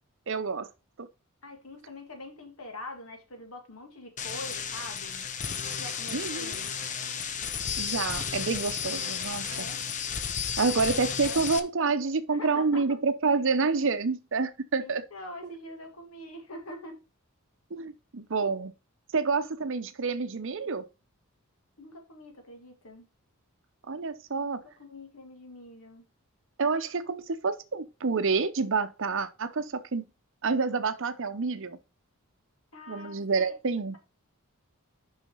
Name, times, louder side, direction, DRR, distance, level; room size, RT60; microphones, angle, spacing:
voice 1, 0.3-0.7 1.0-1.1 6.1-6.7 7.8-9.7 10.6-15.0 17.7-18.7 19.1-20.8 23.9-24.6 26.6-30.0 30.4-31.8 32.9-34.0, right 4 dB, 60° right, 0.7 m, -28 dB
voice 2, 1.4-5.3 5.8-6.7 9.5-9.9 10.6-11.4 12.3-13.0 14.8-17.0 21.8-23.1 24.3-26.0 32.7-33.6, left 1 dB, 75° left, 1.9 m, -44 dB
sound 1, 4.2-11.6, left 7 dB, 35° left, 0.7 m, -33 dB
6.1 x 5.6 x 5.5 m
head